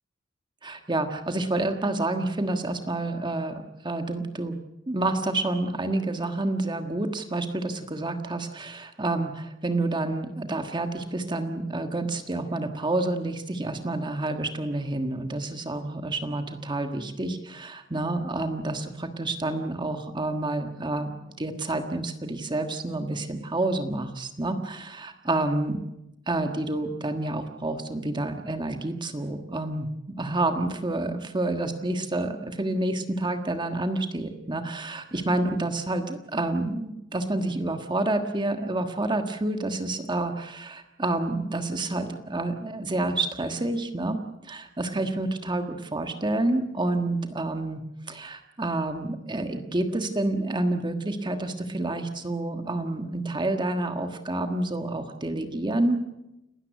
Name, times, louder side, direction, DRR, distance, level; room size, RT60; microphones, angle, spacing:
voice 1, 0.6-4.6 4.9-21.1 21.4-25.8 26.3-29.9 30.2-56.0, right 2 dB, 25° right, 6 dB, 1.5 m, -29 dB
30.0 x 13.0 x 8.1 m, 0.91 s
head